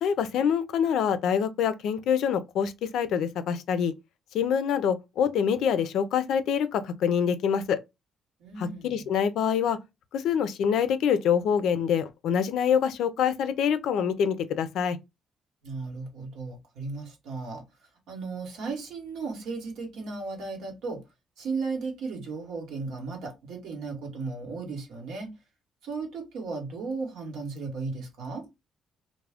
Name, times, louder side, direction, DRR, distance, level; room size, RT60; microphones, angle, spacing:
voice 1, 0.0-3.9 4.3-7.8 8.6-9.8 10.1-15.0, left 7 dB, 80° left, 0.4 m, -25 dB
voice 2, 8.4-9.0 15.6-17.6 18.1-21.0 21.4-25.3 25.8-28.4, right 4 dB, 85° right, 1.0 m, -35 dB
2.3 x 2.0 x 3.3 m
cardioid pair, 90°, 0 cm